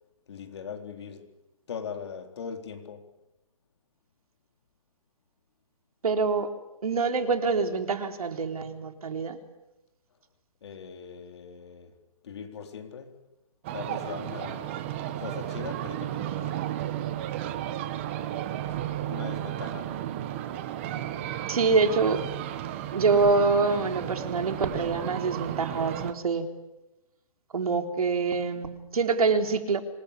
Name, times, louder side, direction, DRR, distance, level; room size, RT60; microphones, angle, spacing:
voice 1, 0.3-1.3 1.7-3.1 10.6-12.0 12.2-13.2 13.7-14.8 15.2-16.7 19.1-20.1, left 6 dB, 45° left, 3.9 m, -40 dB
voice 2, 6.0-6.5 6.8-9.4 21.5-22.2 22.9-26.5 27.5-29.8, right 4 dB, 75° right, 3.7 m, -25 dB
sound 1, 13.6-26.1, right 12 dB, 20° right, 1.3 m, -33 dB
27.0 x 20.5 x 8.5 m
hypercardioid pair, 175°, 19 cm